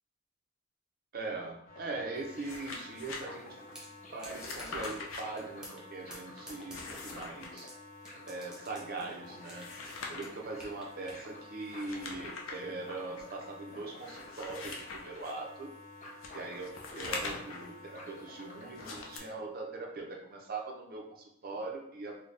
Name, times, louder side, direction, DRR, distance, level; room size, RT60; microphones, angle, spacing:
voice 1, 1.1-3.6 4.1-6.8 7.0-7.7 8.2-9.6 10.1-15.7 16.3-22.2, right 3 dB, 50° right, 0 dB, 0.6 m, -41 dB
sound 1, 1.6-19.2, left 2 dB, 40° left, 0.7 m, -50 dB
sound 2, 2.2-3.2 4.2-5.2 6.5-7.5 9.3-10.4 11.6-12.6 13.2-13.3 13.9-15.3 16.2-17.7 18.7-19.2, left 3 dB, 80° left, 0.6 m, -42 dB
sound 3, 3.7-3.9 4.2-5.0 5.4-5.8 6.1-7.7 8.0-9.7 10.0-11.2, equal, 5° right, 1.0 m, -49 dB
4.0 x 2.3 x 3.2 m, 0.73 s
head